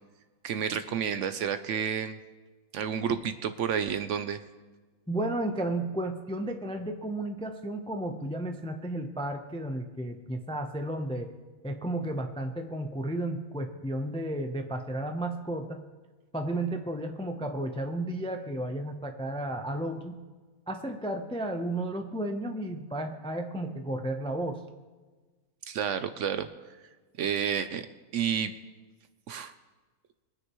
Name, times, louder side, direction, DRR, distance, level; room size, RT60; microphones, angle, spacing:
voice 1, 0.4-2.2 2.7-4.4 25.7-26.5 27.2-27.9 28.1-28.5 29.3-29.5, right 8 dB, 65° right, 11 dB, 0.8 m, -30 dB
voice 2, 5.1-11.3 11.6-15.8 16.3-20.2 20.7-24.6, right 1 dB, 10° left, 5 dB, 0.3 m, -33 dB
22.0 x 9.6 x 3.1 m, 1.3 s
omnidirectional pair, 1.5 m